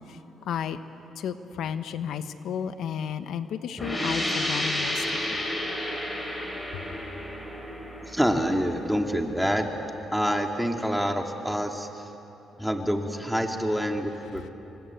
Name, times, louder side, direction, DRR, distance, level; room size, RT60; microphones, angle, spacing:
voice 1, 0.5-0.8 1.2-5.0, left 8 dB, 75° left, 10 dB, 1.2 m, -32 dB
sound 1, 3.8-9.3, left 1 dB, 20° left, 6.1 m, -31 dB
voice 2, 8.1-9.7 10.1-12.1 12.6-14.5, equal, ahead, 3 dB, 2.6 m, -27 dB
28.0 x 24.5 x 8.5 m, 3.0 s
cardioid pair, 90°, 0 cm